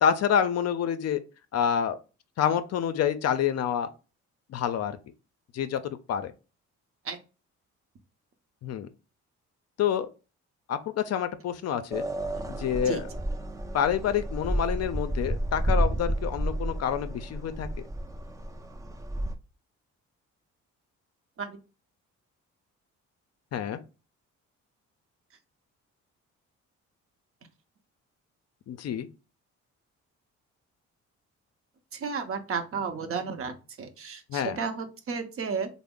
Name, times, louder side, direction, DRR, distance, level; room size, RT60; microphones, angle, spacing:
voice 1, 0.0-1.2 1.5-2.0 2.4-3.9 4.5-5.0 5.5-5.8 6.1-6.3 8.6-8.9 9.8-10.1 10.7-12.0 12.6-13.1 13.7-17.7 23.5-23.8 28.7-29.1 34.3-34.6, left 8 dB, 55° left, 0.5 m, -27 dB
sound 1, 11.9-19.4, right 1 dB, 10° right, 0.4 m, -31 dB
voice 2, 31.9-35.7, right 5 dB, 50° right, 0.7 m, -33 dB
3.3 x 2.0 x 3.6 m
cardioid pair, 90°, 30 cm